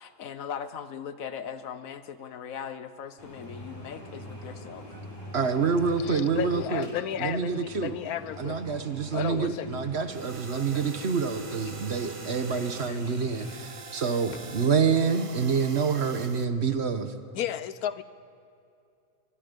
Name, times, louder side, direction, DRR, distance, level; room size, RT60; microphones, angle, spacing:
voice 1, 0.0-4.9, left 7 dB, 70° left, 12 dB, 1.4 m, -39 dB
sound 1, 3.2-13.5, equal, 35° left, 5.4 m, -45 dB
voice 2, 5.3-6.9 7.2-8.0 8.4-17.1, right 5 dB, 50° right, 8 dB, 1.4 m, -27 dB
voice 3, 6.0-8.6 9.1-9.7 10.5-11.1 11.7-11.8 12.2-13.0 17.3-18.0, left 10 dB, 90° left, 14 dB, 1.3 m, -34 dB
sound 2, 10.1-16.4, right 4 dB, 30° right, 0.6 m, -44 dB
23.5 x 21.5 x 5.3 m, 2.6 s
omnidirectional pair, 1.5 m